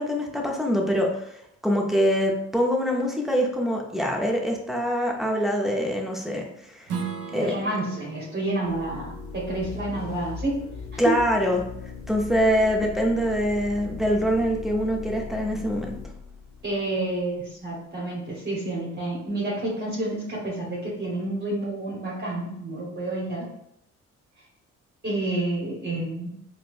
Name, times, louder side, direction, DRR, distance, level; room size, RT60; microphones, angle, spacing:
voice 1, 0.0-6.9 7.3-7.5 11.0-11.6 12.1-15.9, equal, ahead, -1 dB, 0.6 m, -24 dB
Strum, 6.9-12.1, right 6 dB, 55° right, 0.6 m, -39 dB
voice 2, 7.3-10.6 10.9-11.0 16.6-23.5 25.0-26.3, right 2 dB, 35° right, -5 dB, 1.1 m, -29 dB
sound 1, 8.6-17.3, left 5 dB, 45° left, 0.8 m, -39 dB
4.3 x 2.2 x 2.4 m, 0.78 s
cardioid pair, 90°, 30 cm